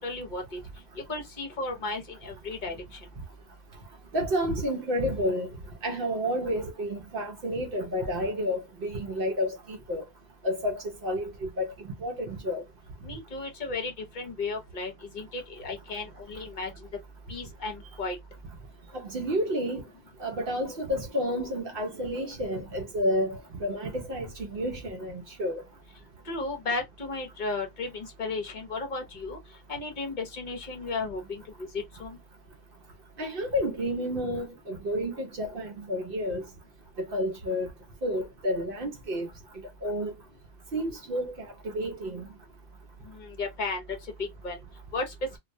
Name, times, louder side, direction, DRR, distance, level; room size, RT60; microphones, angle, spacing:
voice 1, 0.0-0.6 1.1-2.7 13.0-16.7 17.3-18.2 26.3-29.4 29.7-31.7 32.0-32.2 43.1-43.8 44.4-44.6 44.9-45.1, left 3 dB, 50° left, 0.8 m, -34 dB
voice 2, 4.1-5.5 5.8-10.0 10.4-11.7 12.0-12.6 18.9-19.8 20.2-25.6 33.2-36.5 37.0-37.7 38.0-39.3 39.8-40.1 40.7-41.5 41.7-42.3, equal, 65° right, 0.7 m, -30 dB
2.3 x 2.0 x 2.6 m
omnidirectional pair, 1.1 m